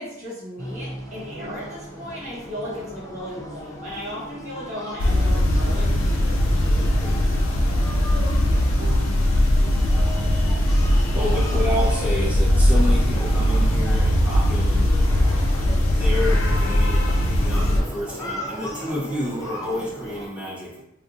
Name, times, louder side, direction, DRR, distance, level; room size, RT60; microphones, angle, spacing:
voice 1, 0.0-7.6, equal, 40° right, 1.5 m, -36 dB
sound 1, 0.6-20.3, equal, 15° left, 0.4 m, -38 dB
voice 2, 1.3-2.0 2.6-2.8 3.8-4.1 5.1-5.7 7.6-12.3 12.7-12.8 13.9-14.2 15.1-15.5 16.2-16.4 16.9-18.0 18.5-20.8, right 3 dB, 80° right, 0.3 m, -42 dB
sound 2, 5.0-17.8, left 1 dB, 70° left, 0.5 m, -20 dB
voice 3, 11.1-20.8, left 1 dB, 5° right, 1.2 m, -30 dB
3.5 x 2.4 x 2.6 m
head